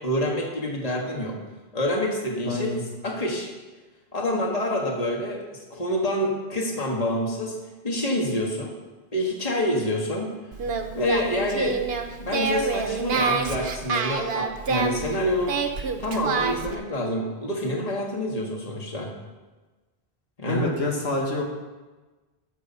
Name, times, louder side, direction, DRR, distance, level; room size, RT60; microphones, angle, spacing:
voice 1, 0.0-1.4 1.7-2.8 3.0-3.5 4.1-7.6 7.8-8.7 9.1-10.3 10.9-11.8 12.2-15.6 16.0-19.1 20.4-20.7, left 1 dB, 35° left, -1 dB, 1.8 m, -27 dB
voice 2, 2.5-2.8 20.5-21.4, left 2 dB, 75° left, -1 dB, 1.8 m, -26 dB
Singing, 10.5-16.8, right 5 dB, 70° right, 1.1 m, -27 dB
11.5 x 7.2 x 5.5 m, 1.2 s
omnidirectional pair, 1.1 m